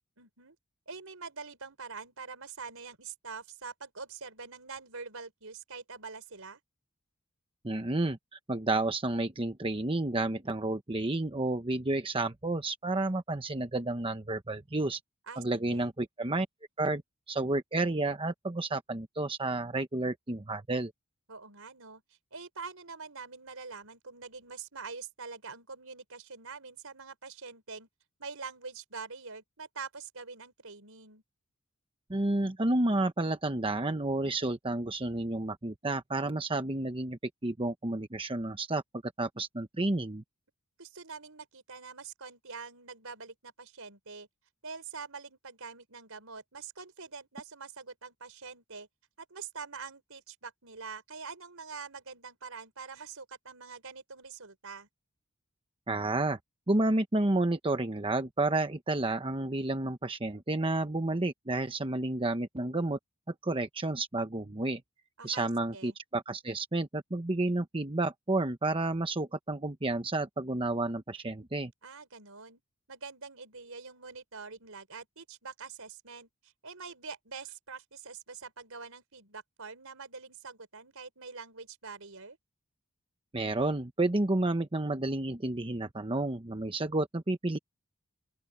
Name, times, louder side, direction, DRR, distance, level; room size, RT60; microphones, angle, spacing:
voice 1, 0.2-0.6 0.9-6.6 15.3-15.9 21.3-22.0 22.3-27.9 28.2-31.2 40.8-44.3 44.6-48.9 49.2-54.9 65.2-65.9 71.8-72.6 72.9-82.4, right 5 dB, 75° right, 4.6 m, -45 dB
voice 2, 7.6-15.0 15.4-16.5 16.8-17.0 17.3-20.9 32.1-40.2 55.9-56.4 56.7-63.0 63.3-64.8 65.2-71.7 83.3-87.6, right 2 dB, 25° right, 1.0 m, -31 dB
open air
head